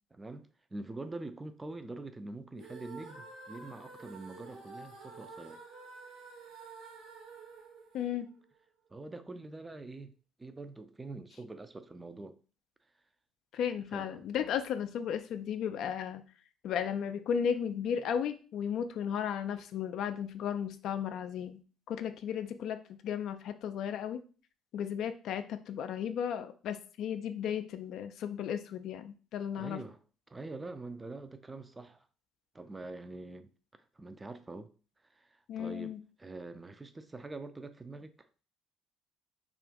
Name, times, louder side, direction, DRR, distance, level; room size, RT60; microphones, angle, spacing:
voice 1, 0.1-5.6 8.9-12.4 13.9-14.3 29.6-30.0 30.3-32.1 32.5-33.5 33.9-34.7 35.0-38.3, right 2 dB, 20° right, 0.4 m, -45 dB
sound 1, 2.5-8.7, right 3 dB, 70° right, 1.0 m, -50 dB
voice 2, 7.9-8.3 13.5-16.2 16.6-21.6 21.9-24.2 24.7-29.8 35.5-36.0, left 8 dB, 55° left, 0.3 m, -35 dB
2.5 x 2.4 x 3.5 m
figure-of-eight pair, 50°, 0 cm